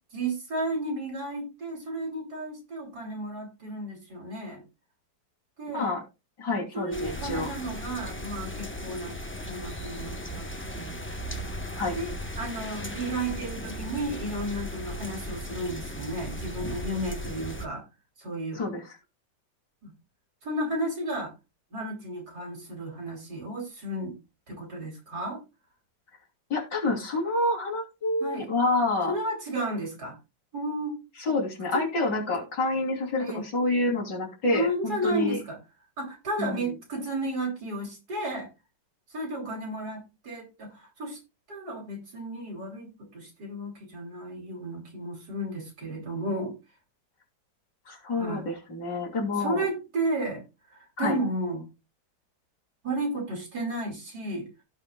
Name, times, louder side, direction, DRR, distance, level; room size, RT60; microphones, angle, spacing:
voice 1, 0.1-4.6 5.6-5.9 6.7-9.2 9.5-10.5 10.7-11.0 11.4-11.5 11.9-17.8 18.2-18.6 19.8-19.9 20.4-21.3 21.7-24.2 24.5-25.4 28.2-28.5 29.1-30.1 30.5-31.0 31.7-31.8 33.2-33.4 34.5-35.6 36.0-38.5 39.1-41.2 41.5-46.6 48.1-48.4 49.4-50.4 50.7-51.7 52.8-54.5, right 1 dB, 60° right, 3.6 m, -33 dB
voice 2, 6.4-7.5 11.8-12.0 18.5-19.0 26.5-29.1 31.2-35.4 36.4-36.6 47.9-49.7 51.0-51.2, left 2 dB, 70° left, 3.7 m, -28 dB
sound 1, 6.9-17.6, equal, 15° left, 0.4 m, -37 dB
16.5 x 5.6 x 2.3 m
omnidirectional pair, 2.0 m